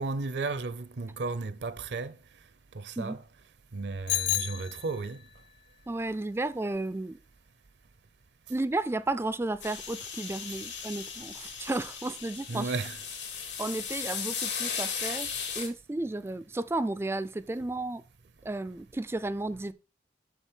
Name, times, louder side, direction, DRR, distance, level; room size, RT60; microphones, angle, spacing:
voice 1, 0.0-2.2 2.7-3.2 3.7-5.2 12.5-13.0, right 3 dB, 70° right, 0.6 m, -34 dB
Bicycle bell, 4.1-5.3, left 12 dB, 60° left, 0.7 m, -31 dB
voice 2, 5.9-7.2 8.5-12.7 13.6-15.3 15.5-18.0 18.4-19.7, right 2 dB, 15° right, 0.3 m, -33 dB
sound 1, 9.6-15.7, left 6 dB, 85° left, 2.9 m, -36 dB
6.6 x 6.3 x 4.4 m
head